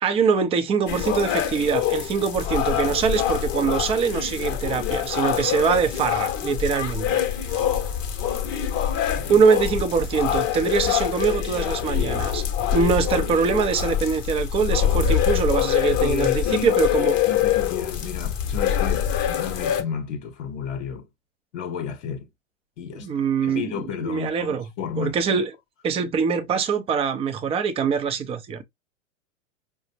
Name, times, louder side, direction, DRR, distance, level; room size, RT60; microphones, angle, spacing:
voice 1, 0.0-7.2 7.5-7.6 9.3-12.4 12.7-17.2 23.0-23.7 24.0-24.7 25.0-25.5 25.8-28.6, right 6 dB, 15° right, 0.5 m, -23 dB
sound 1, 0.9-19.8, left 10 dB, 35° left, 0.9 m, -25 dB
voice 2, 16.0-21.1 21.5-22.3 22.8-23.1 23.4-25.5, left 7 dB, 55° left, 1.0 m, -32 dB
4.9 x 2.1 x 2.7 m
figure-of-eight pair, 100°, 39 cm